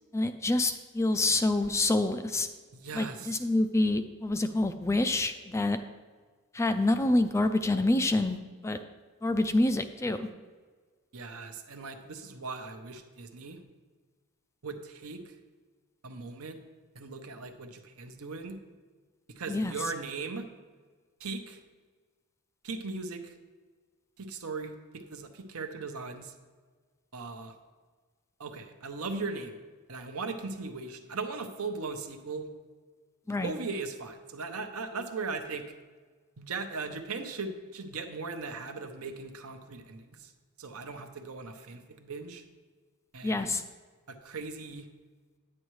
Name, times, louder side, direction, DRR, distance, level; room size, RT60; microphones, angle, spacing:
voice 1, 0.1-2.5 2.9-5.8 6.5-8.4 8.6-8.8 9.2-10.3 19.5-19.7 33.3-33.5 43.2-43.6, left 2 dB, 15° left, 9 dB, 0.3 m, -27 dB
voice 2, 2.7-3.5 11.1-13.6 14.6-15.4 16.0-16.6 16.9-18.6 19.3-20.5 21.2-21.6 22.6-23.3 24.2-26.3 27.1-27.5 28.4-29.6 29.9-32.5 33.3-35.6 36.4-40.3 40.6-42.4 43.1-43.5 44.1-44.9, right 4 dB, 70° right, 6 dB, 0.8 m, -38 dB
10.0 x 8.6 x 3.1 m, 1.5 s
head